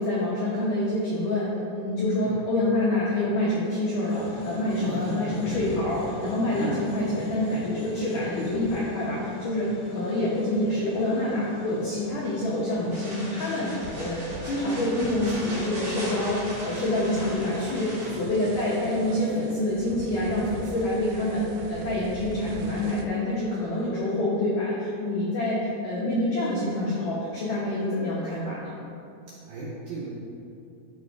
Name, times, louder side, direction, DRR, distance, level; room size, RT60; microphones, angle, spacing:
voice 1, 0.0-17.9 18.2-28.7, left 1 dB, 80° left, -7 dB, 1.9 m, -27 dB
sound 1, 4.0-19.6, left 2 dB, 60° left, 1.8 m, -42 dB
voice 2, 4.8-5.4 6.6-6.8 18.0-18.3 29.5-30.2, right 4 dB, 75° right, -6 dB, 2.2 m, -36 dB
sound 2, 12.9-18.1, equal, 55° right, 1.2 m, -39 dB
sound 3, 13.8-23.0, right 3 dB, 90° right, 2.5 m, -42 dB
13.0 x 4.7 x 3.6 m, 2.6 s
omnidirectional pair, 5.6 m